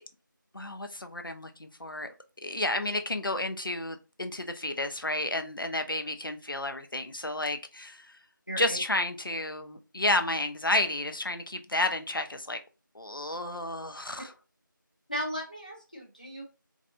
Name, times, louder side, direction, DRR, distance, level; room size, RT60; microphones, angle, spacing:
voice 1, 0.5-2.1 2.4-8.2 8.6-12.6 12.9-14.3, left 2 dB, 80° left, 0.7 m, -31 dB
voice 2, 8.5-8.8 15.1-16.4, equal, 25° left, 0.7 m, -36 dB
4.0 x 2.5 x 2.6 m
figure-of-eight pair, 175°, 11 cm